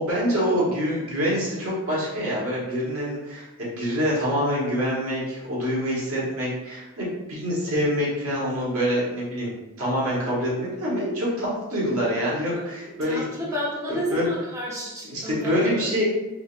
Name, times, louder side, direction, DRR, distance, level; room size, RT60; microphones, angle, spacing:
voice 1, 0.0-9.5 9.8-13.2 13.9-14.3 15.1-16.0, equal, 90° right, -6 dB, 1.4 m, -26 dB
voice 2, 12.8-15.9, equal, 15° right, -7 dB, 0.8 m, -31 dB
3.7 x 3.1 x 2.5 m, 1.0 s
head